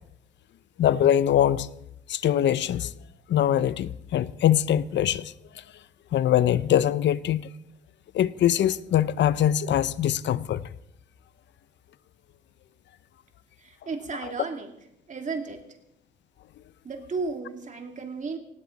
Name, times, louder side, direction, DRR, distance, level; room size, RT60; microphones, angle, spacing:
voice 1, 0.8-1.7 2.1-2.9 3.3-5.3 6.1-7.5 8.1-10.6, left 11 dB, 65° left, 0.7 m, -23 dB
voice 2, 13.6-14.7 15.1-15.6 16.8-18.4, right 4 dB, 40° right, 2.8 m, -34 dB
18.5 x 17.0 x 4.1 m
cardioid pair, 90°, 20 cm